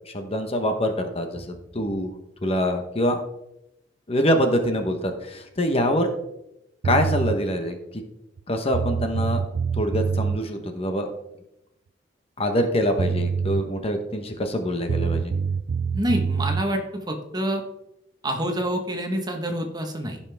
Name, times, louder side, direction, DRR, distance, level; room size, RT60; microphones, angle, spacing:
voice 1, 0.1-2.1 2.4-3.2 4.1-6.1 6.8-7.8 8.5-9.4 9.7-11.1 12.4-15.3, equal, 35° left, 6 dB, 1.0 m, -24 dB
sound 1, 6.8-7.4 8.4-8.5 8.7-10.4 12.6-12.7 13.0-13.6 14.9-16.6, right 5 dB, 85° right, 0.4 m, -25 dB
voice 2, 15.9-17.6 18.2-20.2, right 1 dB, 25° right, 3 dB, 1.3 m, -27 dB
15.5 x 5.7 x 3.5 m, 0.87 s
head